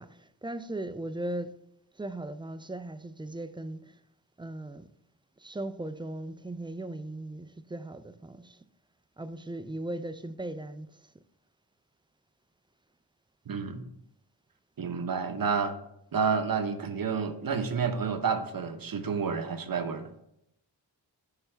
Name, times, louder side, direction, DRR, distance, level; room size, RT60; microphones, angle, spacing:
voice 1, 0.0-1.5 2.0-4.0 4.4-4.9 5.4-8.6 9.2-11.1, right 1 dB, 10° right, 0.3 m, -38 dB
voice 2, 13.5-13.9 14.8-15.8 16.1-20.1, right 5 dB, 50° right, 0.7 m, -30 dB
6.7 x 3.3 x 4.4 m
cardioid pair, 45°, 45 cm